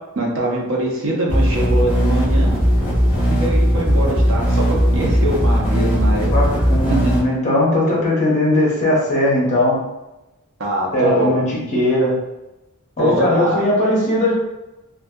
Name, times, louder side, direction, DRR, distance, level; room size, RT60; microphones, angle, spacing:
voice 1, 0.2-2.5 3.3-4.6 4.9-6.3 6.9-7.0 10.6-11.3 13.0-13.6, right 1 dB, 60° right, -3 dB, 0.6 m, -23 dB
sound 1, 1.3-7.2, equal, 10° right, 1.2 m, -17 dB
voice 2, 6.3-9.8 10.9-12.2 13.0-14.3, left 1 dB, 30° left, -6 dB, 0.7 m, -18 dB
2.6 x 2.3 x 2.2 m, 0.98 s
head